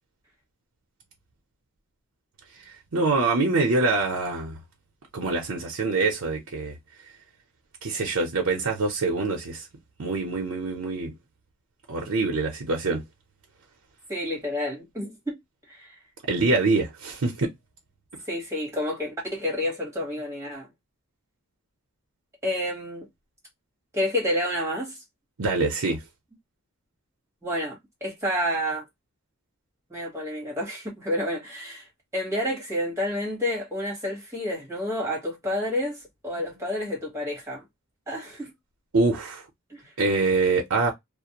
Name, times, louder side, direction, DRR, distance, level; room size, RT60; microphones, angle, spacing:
voice 1, 2.9-4.6 5.1-6.8 7.8-9.7 10.0-11.1 11.9-13.0 16.3-17.5 25.4-26.0 38.9-39.4 40.0-40.9, right 3 dB, 75° right, 0.7 m, -24 dB
voice 2, 14.1-15.4 15.7-15.9 18.3-20.7 22.4-23.1 23.9-25.0 27.4-28.8 29.9-31.9 32.1-37.6 38.1-38.5 39.7-39.9, left 1 dB, 15° right, 1.2 m, -29 dB
2.4 x 2.0 x 2.8 m
head